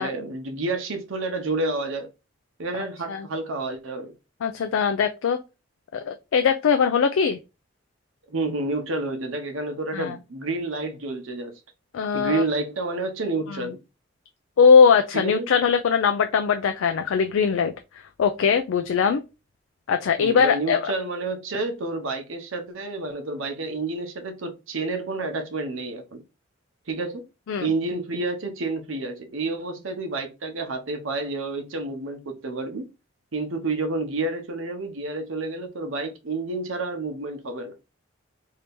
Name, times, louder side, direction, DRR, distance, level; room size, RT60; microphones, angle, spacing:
voice 1, 0.0-2.1 2.6-4.1 8.3-11.5 12.1-13.8 15.1-15.5 20.2-26.2 26.9-27.2 27.6-32.8 33.3-37.8, right 3 dB, 85° right, 0.8 m, -29 dB
voice 2, 4.4-5.4 5.9-7.4 9.9-10.2 11.9-12.4 13.5-13.7 14.6-17.7 18.2-19.2 19.9-20.9 27.5-27.7, left 6 dB, 90° left, 0.4 m, -20 dB
2.8 x 2.7 x 3.5 m
head